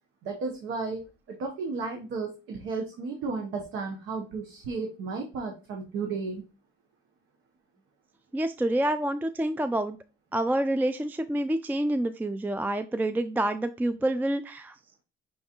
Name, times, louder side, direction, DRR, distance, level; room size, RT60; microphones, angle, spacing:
voice 1, 0.2-6.4, right 4 dB, 85° right, 2 dB, 0.9 m, -34 dB
voice 2, 8.3-10.0 10.3-14.7, right 1 dB, 10° right, 10 dB, 0.3 m, -27 dB
5.4 x 3.4 x 2.9 m, 0.31 s
cardioid pair, 90°, 20 cm